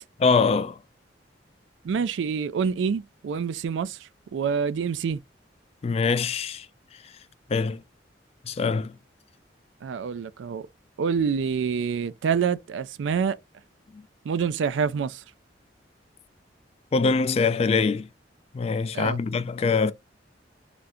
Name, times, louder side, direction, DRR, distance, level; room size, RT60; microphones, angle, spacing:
voice 1, 0.2-0.8 5.8-6.7 7.5-7.8 8.5-9.0 13.9-14.0 16.9-18.1 18.5-19.9, left 4 dB, 35° left, 0.3 m, -23 dB
voice 2, 1.8-5.2 9.8-10.7 11.0-13.4 14.2-15.2 18.9-19.2, right 6 dB, 85° right, 0.3 m, -27 dB
3.4 x 2.4 x 2.6 m
head